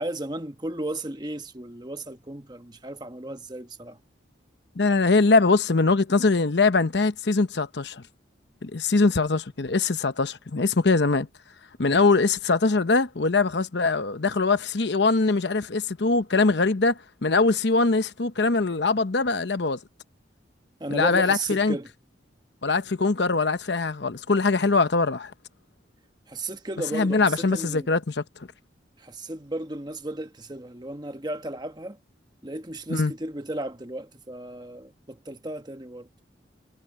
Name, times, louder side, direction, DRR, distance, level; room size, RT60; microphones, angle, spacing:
voice 1, 0.0-4.0 20.8-21.9 26.3-27.9 29.0-32.0 32.4-36.1, right 1 dB, 20° right, 1.1 m, -34 dB
voice 2, 4.8-8.0 8.6-11.3 11.8-19.8 20.9-21.8 22.6-25.3 26.9-28.2 32.9-33.1, left 3 dB, 65° left, 0.9 m, -22 dB
head